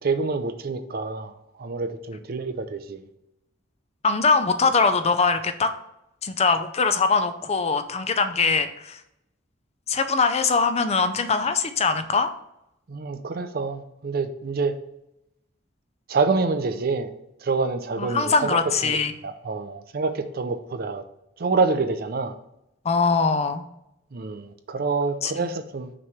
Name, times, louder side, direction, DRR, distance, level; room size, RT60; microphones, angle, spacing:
voice 1, 0.0-1.3 1.6-3.0 12.9-14.8 16.1-17.1 17.4-19.0 19.2-21.0 21.4-22.3 24.1-25.9, right 4 dB, 50° right, 9 dB, 0.5 m, -27 dB
voice 2, 4.0-5.7 6.2-9.0 9.9-12.3 18.0-19.1 22.8-23.6 25.2-25.5, left 4 dB, 35° left, 9 dB, 0.5 m, -22 dB
6.0 x 3.2 x 5.8 m, 0.82 s
head